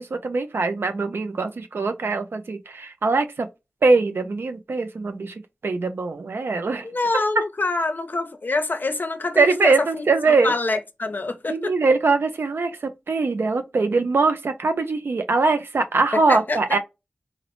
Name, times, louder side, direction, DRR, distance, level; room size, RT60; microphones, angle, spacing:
voice 1, 0.0-3.5 3.8-6.9 9.4-10.5 11.5-16.8, right 3 dB, 85° right, 0.5 m, -22 dB
voice 2, 6.8-11.7 16.1-16.6, left 3 dB, 55° left, 0.5 m, -26 dB
3.8 x 2.0 x 2.9 m
wide cardioid pair, 55°, 4 cm